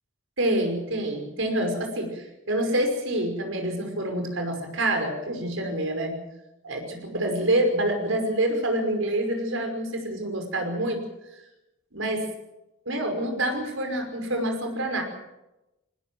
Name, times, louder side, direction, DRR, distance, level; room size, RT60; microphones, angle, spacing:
voice 1, 0.4-6.2 6.6-11.0 11.9-12.2 12.9-15.0, right 1 dB, 70° right, 5 dB, 5.5 m, -27 dB
21.0 x 19.5 x 7.7 m, 0.95 s
head